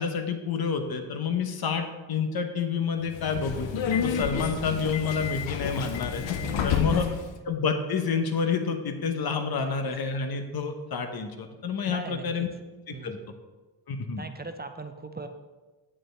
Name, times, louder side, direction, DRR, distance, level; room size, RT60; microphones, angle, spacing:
voice 1, 0.0-3.7 4.0-6.2 6.6-7.1 7.5-12.5 12.9-13.2 13.9-14.2, left 5 dB, 55° left, 7 dB, 0.9 m, -28 dB
Subway metro underground, 3.1-7.3, left 7 dB, 75° left, 0.7 m, -30 dB
voice 2, 6.4-7.0 9.6-9.7 11.9-12.5 12.9-13.3 14.2-15.3, right 4 dB, 20° right, 7 dB, 0.5 m, -39 dB
9.8 x 7.7 x 3.4 m, 1.2 s
wide cardioid pair, 115°, 45 cm